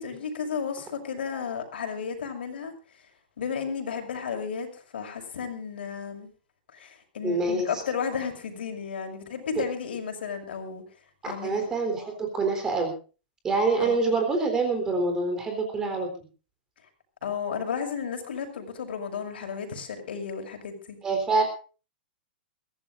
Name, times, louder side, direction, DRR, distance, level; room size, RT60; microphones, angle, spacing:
voice 1, 0.0-2.7 3.4-6.3 6.7-10.8 11.2-11.6 13.8-14.2 17.2-21.0, left 6 dB, 85° left, 5 dB, 6.4 m, -33 dB
voice 2, 7.2-7.8 11.2-12.9 13.4-16.1 21.0-21.4, right 3 dB, 10° right, 5 dB, 3.8 m, -26 dB
23.0 x 16.5 x 2.6 m, 0.36 s
supercardioid pair, 180°, 5 cm